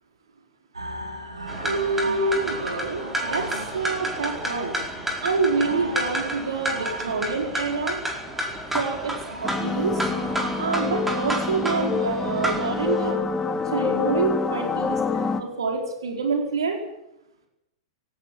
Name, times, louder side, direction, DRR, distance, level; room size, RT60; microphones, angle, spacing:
sound 1, 0.7-12.0, right 2 dB, 85° right, 4.1 m, -38 dB
sound 2, 1.5-13.1, right 1 dB, 10° right, 4.5 m, -31 dB
voice 1, 1.6-4.7 5.2-8.0 8.7-9.1 9.4-10.1 10.6-13.3 13.7-16.8, right 4 dB, 70° right, 3 dB, 4.5 m, -27 dB
sound 3, 9.4-15.4, left 4 dB, 15° left, 2.1 m, -27 dB
18.5 x 17.5 x 9.0 m, 0.84 s
figure-of-eight pair, 100°, 3 cm